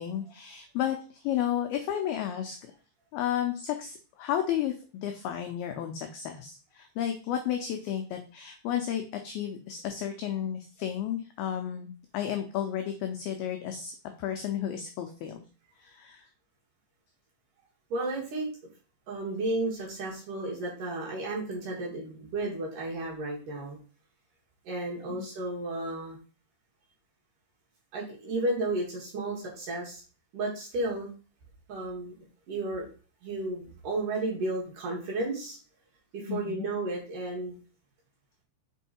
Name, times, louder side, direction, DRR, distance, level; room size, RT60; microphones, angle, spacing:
voice 1, 0.0-2.7 3.1-15.4 15.8-16.3 25.2-25.3 36.3-36.7, left 10 dB, 85° left, 5 dB, 2.1 m, -32 dB
voice 2, 17.9-18.5 19.1-23.8 24.6-26.2 27.9-30.0 30.3-31.1 31.7-32.1 32.5-32.9 33.2-35.6 36.1-37.6, right 2 dB, 55° right, -3 dB, 3.1 m, -33 dB
6.4 x 4.5 x 4.3 m, 0.37 s
omnidirectional pair, 5.2 m